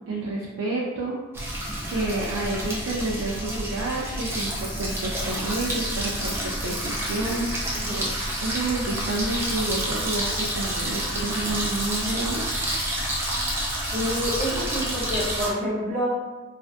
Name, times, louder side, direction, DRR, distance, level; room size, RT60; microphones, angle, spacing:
voice 1, 0.1-1.2 1.9-7.5 8.4-12.4, right 2 dB, 80° right, -5 dB, 0.4 m, -29 dB
sound 1, 1.3-15.5, right 1 dB, 10° right, 0.3 m, -29 dB
voice 2, 7.7-8.1 13.9-16.1, equal, 45° right, -8 dB, 0.9 m, -28 dB
2.5 x 2.2 x 2.4 m, 1.2 s
head